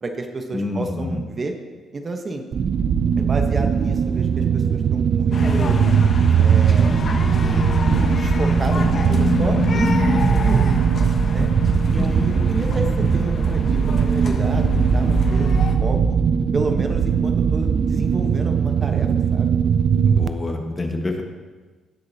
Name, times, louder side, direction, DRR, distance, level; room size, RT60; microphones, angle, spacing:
voice 1, 0.0-1.5 1.9-2.4 3.2-5.8 6.4-6.9 7.8-10.6 11.3-11.5 11.9-15.5 15.8-16.2 16.5-19.5, right 2 dB, 35° right, 4 dB, 1.1 m, -30 dB
voice 2, 0.5-1.2 11.7-12.3 20.1-21.2, left 2 dB, 25° left, 3 dB, 1.4 m, -27 dB
sound 1, 2.5-20.3, right 7 dB, 55° right, 0.4 m, -19 dB
sound 2, 5.3-15.8, left 4 dB, 50° left, 1.1 m, -26 dB
17.0 x 6.5 x 2.8 m, 1.4 s
cardioid pair, 90°, 0 cm